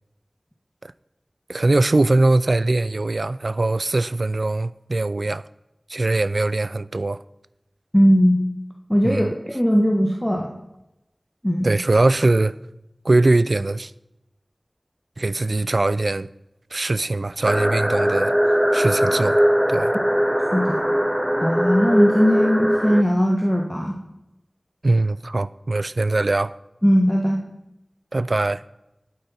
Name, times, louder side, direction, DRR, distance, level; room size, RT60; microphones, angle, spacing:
voice 1, 1.5-5.4 5.9-7.2 9.0-9.3 11.6-12.6 13.0-13.9 15.2-16.3 16.7-18.3 18.7-19.4 19.7-19.9 24.8-26.5 28.1-28.6, right 2 dB, 70° right, 0.4 m, -21 dB
voice 2, 7.9-8.4 8.9-10.5 11.4-11.7 20.5-20.8 21.4-24.0 26.8-27.4, equal, 10° left, 1.4 m, -19 dB
sound 1, 17.4-23.0, equal, 5° right, 0.4 m, -20 dB
11.5 x 9.2 x 4.4 m
wide cardioid pair, 50°, 0 cm